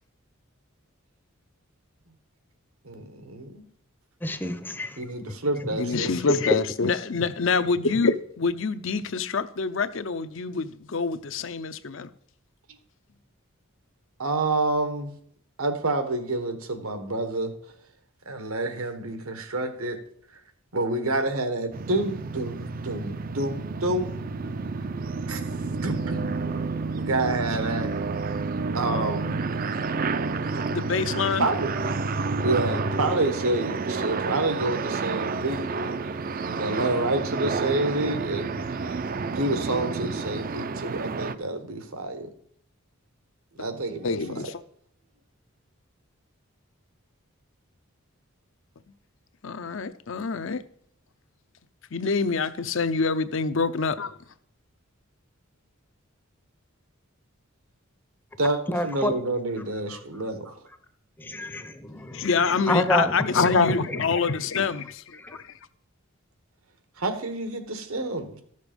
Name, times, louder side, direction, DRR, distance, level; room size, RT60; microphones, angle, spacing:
voice 1, 2.8-3.6 5.0-6.1 14.2-15.1 15.6-17.5 18.2-20.0 20.7-24.1 25.3-25.4 25.8-26.4 26.9-27.9 28.7-29.4 31.4-31.7 32.4-35.7 36.0-36.1 36.5-42.3 43.6-44.1 58.4-60.6 67.0-68.4, right 2 dB, 85° right, 1.5 m, -28 dB
voice 2, 4.2-5.0 5.7-5.8 6.5-6.6 58.7-59.1 59.9-60.0 61.2-62.3 62.7-63.5 65.2-65.4, left 1 dB, 10° left, 0.6 m, -28 dB
voice 3, 5.8-12.1 30.7-31.5 44.0-44.6 49.4-50.6 51.9-54.1 62.1-65.6, left 4 dB, 60° left, 0.6 m, -26 dB
sound 1, 21.7-41.4, right 4 dB, 40° right, 0.4 m, -30 dB
13.5 x 6.6 x 5.2 m
head